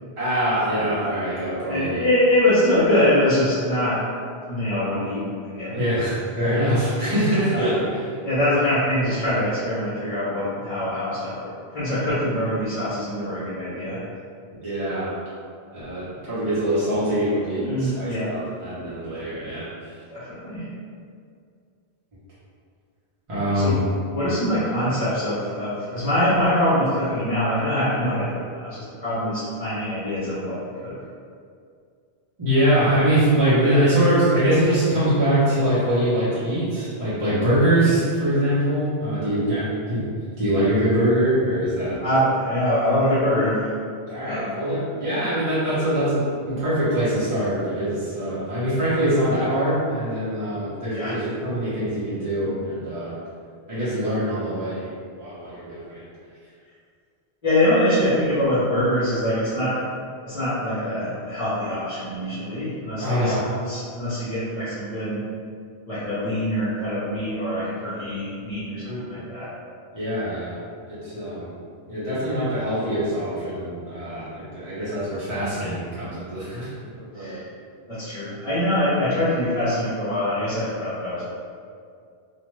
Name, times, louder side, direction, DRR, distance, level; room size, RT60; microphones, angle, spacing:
voice 1, 0.2-2.0 5.7-8.2 14.6-15.1 15.7-19.9 23.3-23.8 32.4-40.0 40.4-42.0 44.1-53.1 53.7-54.9 55.2-56.0 63.0-63.4 68.8-69.2 69.9-70.6 70.9-71.5 71.9-76.7 77.1-77.4, right 1 dB, 35° right, -12 dB, 0.9 m, -23 dB
voice 2, 1.7-4.0 4.4-5.8 7.5-7.7 8.2-14.0 17.6-18.3 20.1-20.7 23.5-23.8 24.1-30.9 42.0-43.6 44.2-44.5 50.9-51.1 57.4-65.2 65.9-69.5 77.1-77.4 77.9-81.2, left 1 dB, 40° left, -12 dB, 0.8 m, -24 dB
2.5 x 2.4 x 3.1 m, 2.2 s
omnidirectional pair, 1.1 m